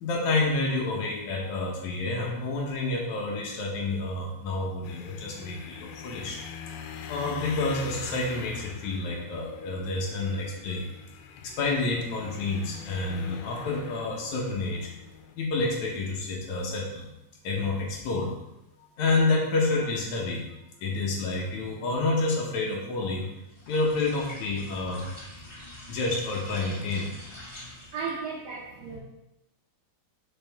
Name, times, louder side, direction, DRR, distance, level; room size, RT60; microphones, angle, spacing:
voice 1, 0.0-6.4 7.1-10.8 11.4-14.9 15.4-17.1 17.4-18.3 19.0-20.4 20.8-23.3 23.7-25.1 25.9-27.1, left 3 dB, 65° left, -2 dB, 2.1 m, -29 dB
sound 1, 4.8-15.4, left 6 dB, 85° left, 2.4 m, -43 dB
sound 2, 23.5-28.1, left 1 dB, 30° left, 2.4 m, -45 dB
voice 2, 27.9-29.0, right 5 dB, 90° right, -3 dB, 1.4 m, -34 dB
7.3 x 4.7 x 3.5 m, 0.92 s
omnidirectional pair, 4.2 m